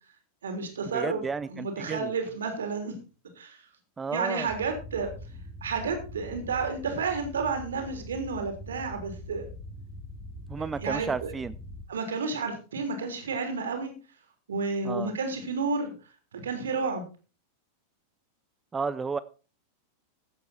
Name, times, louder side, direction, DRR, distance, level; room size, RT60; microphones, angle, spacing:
voice 1, 0.4-1.2 1.5-2.9 3.4-3.6 4.1-5.1 5.6-9.5 10.6-11.3 11.9-13.9 14.5-15.9 16.3-17.1, right 4 dB, 65° right, 5 dB, 3.4 m, -31 dB
voice 2, 0.9-2.1 4.0-4.5 10.5-11.5 14.8-15.1 18.7-19.2, right 5 dB, 15° right, 16 dB, 0.5 m, -32 dB
sound 1, 4.5-11.8, left 1 dB, 10° left, 2.9 m, -43 dB
15.5 x 8.3 x 4.2 m, 0.34 s
figure-of-eight pair, 90°, 0 cm